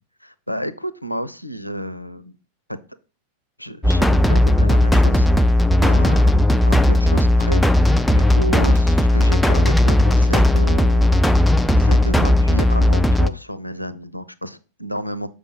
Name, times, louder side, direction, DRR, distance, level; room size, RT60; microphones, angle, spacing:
voice 1, 0.2-2.3 2.7-2.8 3.6-6.4 6.6-11.1 11.8-15.3, equal, 90° left, 15 dB, 0.5 m, -31 dB
sound 1, 3.8-13.3, left 1 dB, 5° left, 0.4 m, -15 dB
6.8 x 5.0 x 5.1 m, 0.35 s
figure-of-eight pair, 90°, 0 cm